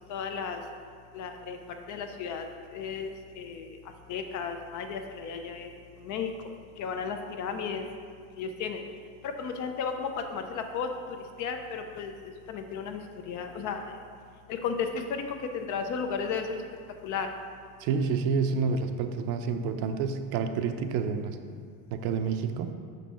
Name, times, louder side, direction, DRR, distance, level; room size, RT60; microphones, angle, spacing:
voice 1, 0.1-0.6 1.1-1.6 1.9-2.4 2.7-3.1 3.4-3.7 4.1-5.7 6.0-6.3 6.8-7.8 8.4-8.8 9.2-10.9 11.4-12.1 12.5-13.0 13.3-13.8 14.5-15.2 15.5-16.5 17.0-17.3, left 6 dB, 50° left, 6 dB, 0.6 m, -33 dB
voice 2, 17.8-21.4 21.9-22.7, right 5 dB, 65° right, 7 dB, 0.6 m, -29 dB
6.2 x 5.3 x 4.3 m, 2.2 s
cardioid pair, 160°, 40 cm